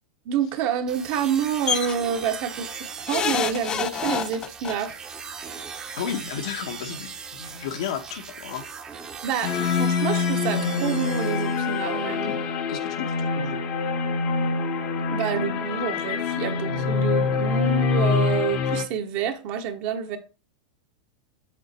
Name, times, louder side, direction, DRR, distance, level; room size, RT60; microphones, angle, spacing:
voice 1, 0.2-5.0 9.2-12.4 15.1-20.2, right 7 dB, 50° right, 1.1 m, -28 dB
sound 1, 0.9-12.0, right 6 dB, 25° right, 0.8 m, -39 dB
sound 2, 1.7-1.9 3.1-4.7 5.9-6.0 6.3-6.4, left 8 dB, 25° left, 0.3 m, -27 dB
voice 2, 6.0-8.6 12.2-12.4 12.7-13.6, left 8 dB, 75° left, 1.2 m, -33 dB
sound 3, 9.4-18.8, left 5 dB, 45° left, 0.9 m, -25 dB
7.3 x 3.6 x 4.3 m
hypercardioid pair, 120°, 3 cm